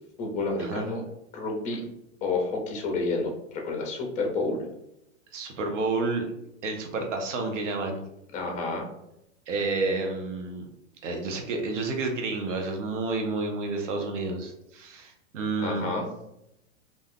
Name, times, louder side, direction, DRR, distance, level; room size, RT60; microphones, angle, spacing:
voice 1, 0.2-1.0 1.3-1.8 2.2-4.6 8.3-8.8 15.6-16.0, left 3 dB, 20° left, 2 dB, 0.7 m, -29 dB
voice 2, 5.3-6.2 6.6-8.0 9.5-10.7 11.0-15.9, right 3 dB, 75° right, 3 dB, 0.9 m, -30 dB
2.5 x 2.3 x 3.5 m, 0.83 s
hypercardioid pair, 140°, 37 cm